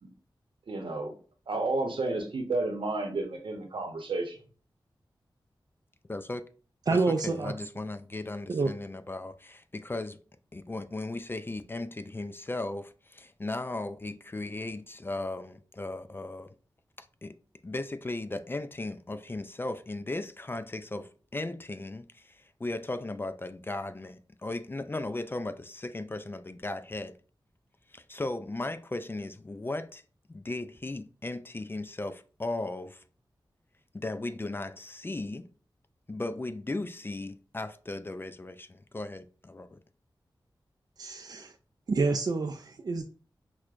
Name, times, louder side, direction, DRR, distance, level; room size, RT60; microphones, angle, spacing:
voice 1, 0.7-1.1 1.5-4.4, right 2 dB, 80° right, 0.9 m, -31 dB
voice 2, 6.1-6.4 6.9-10.2 10.5-16.5 17.0-17.3 17.6-27.2 27.9-30.0 30.3-33.0 33.9-35.5 36.1-39.8, left 2 dB, 25° left, 0.3 m, -36 dB
voice 3, 6.9-7.5 8.5-8.7 41.0-41.5 41.9-43.0, right 3 dB, 50° right, 0.3 m, -28 dB
6.0 x 2.2 x 2.5 m
wide cardioid pair, 60°, 9 cm